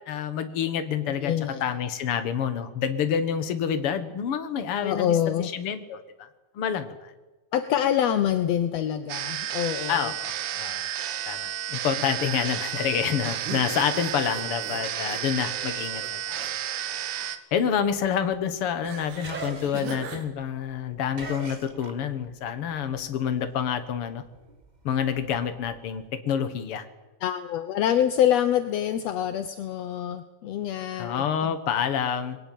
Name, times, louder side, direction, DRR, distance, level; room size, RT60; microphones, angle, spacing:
voice 1, 0.1-1.3 1.6-6.3 6.6-7.1 9.9-10.9 11.3-16.4 17.5-24.2 24.8-26.8 31.0-32.4, left 8 dB, 50° left, 10 dB, 1.9 m, -28 dB
voice 2, 1.1-1.7 4.8-5.5 7.5-10.1 27.2-31.6, left 10 dB, 70° left, 10 dB, 1.6 m, -26 dB
sound 1, 9.1-17.4, right 11 dB, 85° right, 3.1 m, -32 dB
sound 2, 13.2-16.5 16.8-17.4 18.8-20.3, right 6 dB, 65° right, 3.4 m, -40 dB
sound 3, 17.7-22.4 22.7-26.1, right 3 dB, 40° right, 0.6 m, -43 dB
21.5 x 17.5 x 9.4 m, 1.2 s
omnidirectional pair, 3.9 m